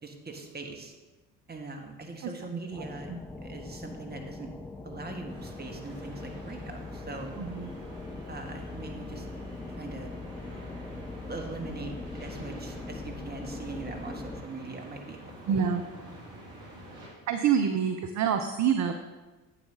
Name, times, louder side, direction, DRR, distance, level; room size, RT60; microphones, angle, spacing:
voice 1, 0.0-1.0 1.5-3.1 3.4-4.5 4.8-7.4 8.3-9.2 9.7-10.1 11.3-11.9 12.2-15.6, right 3 dB, 20° right, 3 dB, 1.4 m, -41 dB
voice 2, 2.2-2.6 3.1-3.2 7.4-7.7 15.5-15.8 17.3-18.9, right 7 dB, 40° right, 7 dB, 0.6 m, -27 dB
sound 1, 2.7-14.4, left 3 dB, 5° left, 0.3 m, -41 dB
sound 2, 5.3-17.1, right 1 dB, 70° right, 2.0 m, -47 dB
8.3 x 7.5 x 3.8 m, 1.2 s
hypercardioid pair, 50°, 46 cm